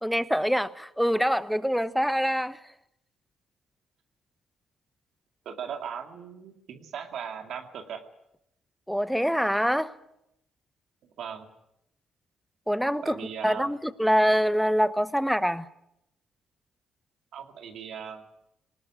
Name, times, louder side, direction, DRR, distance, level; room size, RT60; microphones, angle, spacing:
voice 1, 0.0-2.6 8.9-9.9 12.7-13.2 13.4-15.7, equal, ahead, 1.0 m, -25 dB
voice 2, 5.5-8.0 11.0-11.5 13.0-13.7 17.3-18.2, right 7 dB, 70° right, 2.4 m, -38 dB
19.5 x 19.5 x 9.5 m
cardioid pair, 90°, 0 cm